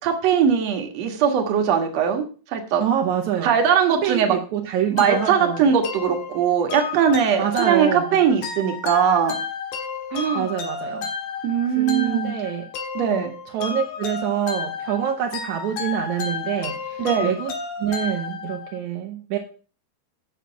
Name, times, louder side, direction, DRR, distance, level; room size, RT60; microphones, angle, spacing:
voice 1, 0.0-2.3 2.5-2.8 3.4-4.4 4.9-9.4 10.1-10.5 11.4-12.3 12.9-13.3 17.0-17.3, right 7 dB, 55° right, 4 dB, 2.0 m, -20 dB
voice 2, 2.8-3.6 4.0-5.7 7.4-8.2 10.3-11.1 11.8-12.7 13.5-17.5 17.8-19.4, right 10 dB, 75° right, 2 dB, 1.8 m, -26 dB
sound 1, 5.0-18.8, left 6 dB, 70° left, 3.3 m, -32 dB
9.2 x 7.4 x 5.6 m, 0.38 s
omnidirectional pair, 4.7 m